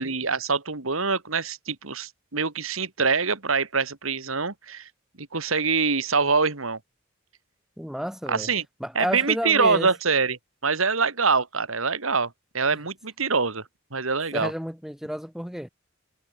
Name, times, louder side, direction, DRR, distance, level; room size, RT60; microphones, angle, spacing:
voice 1, 0.0-4.9 5.2-6.8 8.3-8.6 8.9-13.6 13.9-14.5, right 4 dB, 90° right, 2.7 m, -25 dB
voice 2, 7.8-8.5 8.8-9.9 12.7-12.8 14.3-15.7, equal, ahead, 2.3 m, -31 dB
head